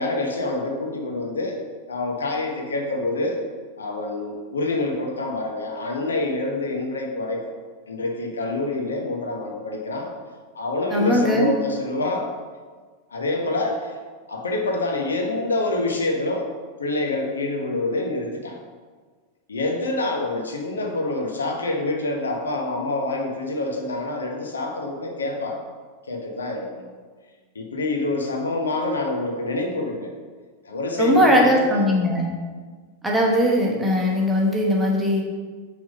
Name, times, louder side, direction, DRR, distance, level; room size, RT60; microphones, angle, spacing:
voice 1, 0.0-1.6 1.9-3.4 3.8-7.5 7.9-10.1 10.5-12.3 13.1-13.9 14.3-16.5 16.8-18.6 19.5-25.6 26.1-26.9 27.5-30.1 30.6-31.9, left 2 dB, 70° left, 2 dB, 0.8 m, -26 dB
voice 2, 10.9-11.5 31.0-32.3 33.0-35.2, equal, 10° right, -2 dB, 1.1 m, -19 dB
6.0 x 3.5 x 4.9 m, 1.5 s
figure-of-eight pair, 90°, 0 cm